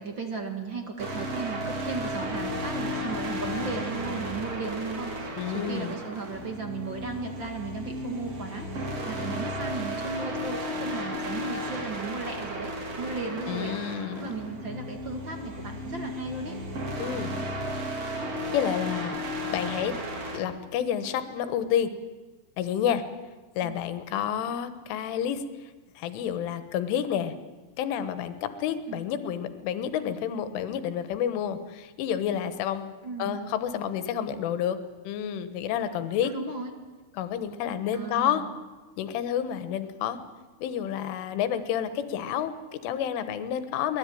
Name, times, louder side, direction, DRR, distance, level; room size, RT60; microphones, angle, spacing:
voice 1, 0.0-16.6 23.6-23.8 28.9-29.0 33.0-33.4 36.2-36.8 37.9-38.5, right 4 dB, 50° right, 4 dB, 1.3 m, -36 dB
sound 1, 1.0-20.4, equal, 35° right, 3.4 m, -34 dB
voice 2, 5.4-6.0 13.5-14.3 17.0-17.3 18.5-19.2 19.5-20.0 20.3-21.9 22.6-23.0 23.6-25.7 26.0-27.4 27.8-32.9 33.2-34.8 35.1-36.3 37.2-38.4 39.0-40.2 40.6-44.0, left 9 dB, 80° left, 11 dB, 3.8 m, -29 dB
23.5 x 20.0 x 9.3 m, 1.3 s
omnidirectional pair, 5.6 m